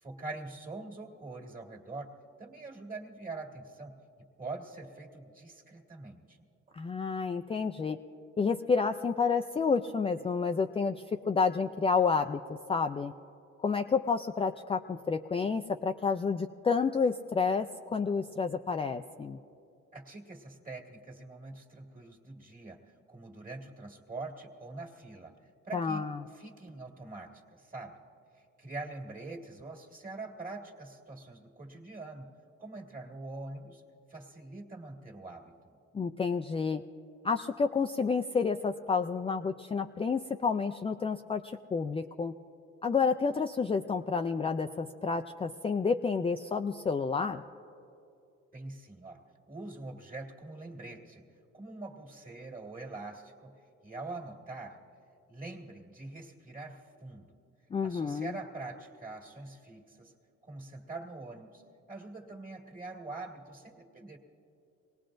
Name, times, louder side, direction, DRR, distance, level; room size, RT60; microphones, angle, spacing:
voice 1, 0.0-2.1 2.4-3.9 4.4-6.4 19.9-22.8 23.1-25.3 25.6-26.1 26.3-27.9 28.3-32.3 32.6-33.8 34.1-35.8 48.5-51.3 51.5-53.5 53.8-54.8 55.3-57.4 57.8-60.1 60.4-61.6 61.9-64.2, right 3 dB, 30° right, 1 dB, 1.9 m, -44 dB
voice 2, 6.7-8.0 8.4-13.1 13.6-19.4 25.7-26.2 35.9-36.8 37.2-42.3 42.8-47.4 57.7-58.4, left 5 dB, 20° left, 5 dB, 0.3 m, -30 dB
24.0 x 18.5 x 2.6 m, 2.7 s
cardioid pair, 90°, 30 cm